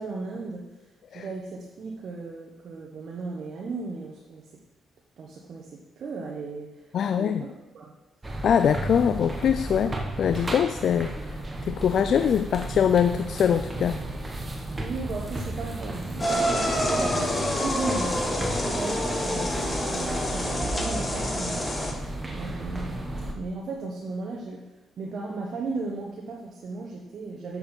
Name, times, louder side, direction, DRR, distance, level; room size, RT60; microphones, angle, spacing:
voice 1, 0.0-4.6 5.2-7.9 8.2-8.4 14.8-21.7 22.3-27.6, right 3 dB, 60° right, -1 dB, 1.2 m, -36 dB
voice 2, 6.9-7.4 8.4-11.1 11.7-14.0, left 8 dB, 60° left, 10 dB, 0.3 m, -23 dB
sound 1, 8.2-23.3, right 1 dB, 20° right, 1.2 m, -34 dB
sound 2, 16.2-21.9, left 1 dB, 25° left, 1.5 m, -27 dB
7.8 x 7.1 x 4.4 m, 1.0 s
cardioid pair, 90°, 0 cm